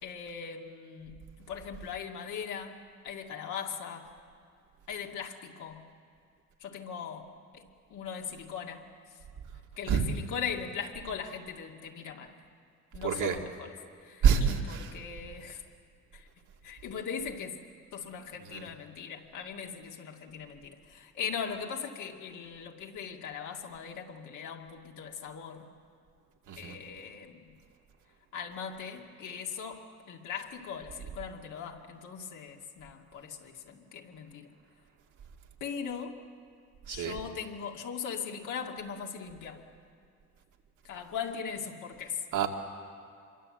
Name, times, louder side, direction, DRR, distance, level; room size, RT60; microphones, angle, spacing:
voice 1, 0.0-4.1 4.9-5.8 6.6-7.6 7.9-8.9 9.8-12.3 12.9-13.8 14.0-15.6 16.1-16.3 16.6-17.6 17.9-25.7 26.6-27.6 28.3-34.5 35.6-36.2 36.9-39.6 40.8-42.2, left 7 dB, 80° left, 1 dB, 2.4 m, -39 dB
voice 2, 13.0-13.4 14.2-14.9 18.5-18.6 26.5-26.8 36.9-37.1 42.3-42.5, right 7 dB, 80° right, 2 dB, 2.3 m, -26 dB
26.0 x 23.0 x 7.8 m, 2.3 s
cardioid pair, 90°, 30 cm